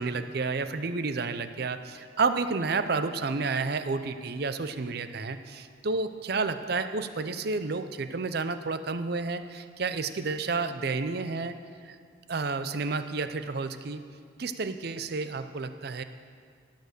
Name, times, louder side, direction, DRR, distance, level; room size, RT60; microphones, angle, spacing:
voice 1, 0.0-11.6 11.8-12.0 12.3-14.0 14.4-16.0, right 4 dB, 55° right, 10 dB, 0.6 m, -30 dB
16.0 x 6.7 x 6.8 m, 2.1 s
head